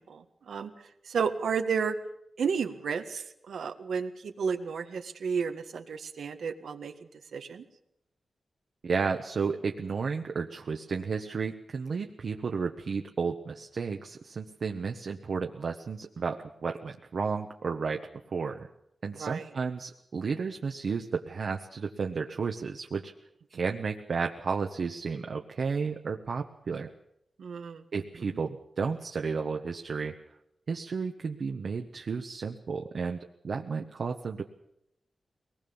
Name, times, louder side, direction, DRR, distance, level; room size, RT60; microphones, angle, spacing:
voice 1, 0.0-1.9 2.4-6.9 7.3-7.6 19.1-19.5 27.4-27.8, right 6 dB, 90° right, 6 dB, 1.7 m, -32 dB
voice 2, 8.8-18.7 19.0-23.1 23.5-26.9 27.9-30.1 30.7-33.2 33.4-34.4, right 5 dB, 60° right, 3 dB, 1.2 m, -32 dB
22.5 x 19.5 x 7.1 m, 0.82 s
wide cardioid pair, 140°, 0 cm